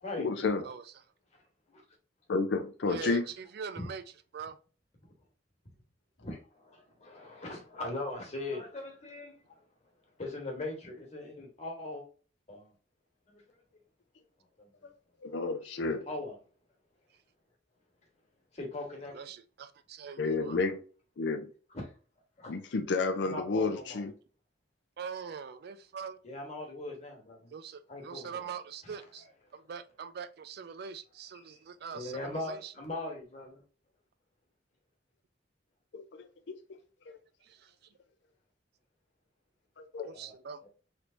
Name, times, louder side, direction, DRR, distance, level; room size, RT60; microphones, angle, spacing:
voice 1, 0.0-0.6 2.3-3.3 14.8-16.1 20.2-20.8 21.2-21.5 22.5-24.2 35.9-37.2 39.8-40.1, left 3 dB, 65° left, 0.5 m, -32 dB
voice 2, 3.6-4.0 4.3-4.6 18.9-20.5 25.0-26.2 27.5-29.3 29.5-32.7 37.4-37.7 40.1-40.7, right 6 dB, 60° right, 0.4 m, -42 dB
voice 3, 6.2-9.6 10.2-12.0 12.5-12.7 13.3-13.4 14.6-14.7 16.1-16.3 18.5-19.1 22.4-22.5 23.3-23.8 26.2-27.5 27.9-28.5 28.8-28.9 31.5-31.6 31.9-33.6, left 2 dB, 40° left, 1.3 m, -40 dB
3.3 x 3.0 x 2.5 m
head